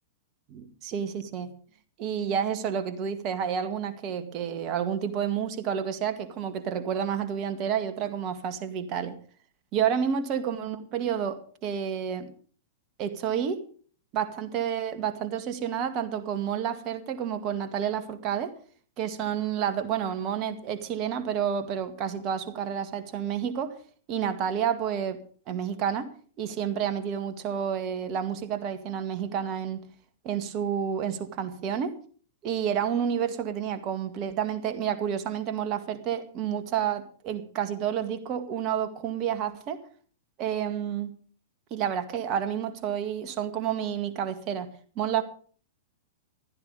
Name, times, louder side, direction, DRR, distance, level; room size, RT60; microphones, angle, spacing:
voice 1, 0.5-1.5 2.0-9.1 9.7-12.3 13.0-13.6 14.1-18.5 19.0-23.7 24.1-25.2 25.5-26.1 26.4-29.8 30.2-31.9 32.4-39.8 40.4-41.1 41.7-44.7 45.0-45.2, right 8 dB, 35° right, 9 dB, 2.0 m, -30 dB
15.0 x 13.0 x 5.2 m, 0.44 s
figure-of-eight pair, 100°, 0 cm